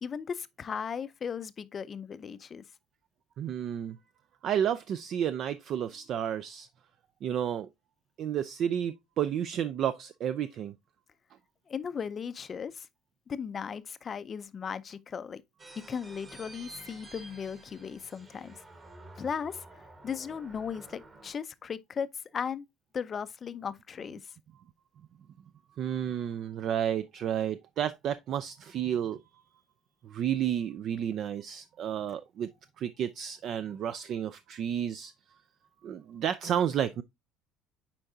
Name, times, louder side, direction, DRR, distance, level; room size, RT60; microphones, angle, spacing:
voice 1, 0.0-2.6 11.7-12.9 13.3-15.4 15.8-18.6 19.2-22.1 22.3-22.7 22.9-24.3, left 7 dB, 30° left, 0.4 m, -37 dB
voice 2, 3.4-4.0 4.4-6.7 7.2-7.7 8.2-10.7 25.8-29.2 30.0-32.5 32.8-35.1 35.8-37.0, right 9 dB, 45° right, 0.4 m, -31 dB
sound 1, 15.6-21.3, right 2 dB, 20° right, 1.3 m, -50 dB
8.4 x 4.5 x 2.6 m
cardioid pair, 135°, 0 cm